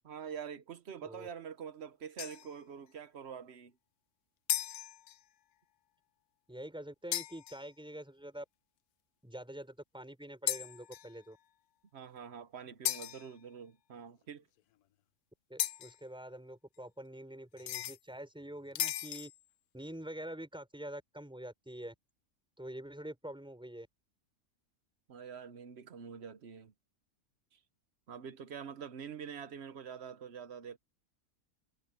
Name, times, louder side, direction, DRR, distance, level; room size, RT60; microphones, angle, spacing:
voice 1, 0.0-3.7 11.9-14.5 25.1-26.7 27.5-27.6 28.1-30.8, right 7 dB, 50° right, 1.1 m, -46 dB
sound 1, 2.2-2.6 4.5-5.2 7.1-7.7 10.5-11.2 12.8-13.3 15.6-16.0 17.6-18.0 18.8-19.4, left 13 dB, 90° left, 1.2 m, -36 dB
voice 2, 6.5-8.5 9.2-11.4 15.5-19.3 19.7-21.9 22.6-23.9, right 1 dB, 5° right, 5.5 m, -46 dB
omnidirectional pair, 1.6 m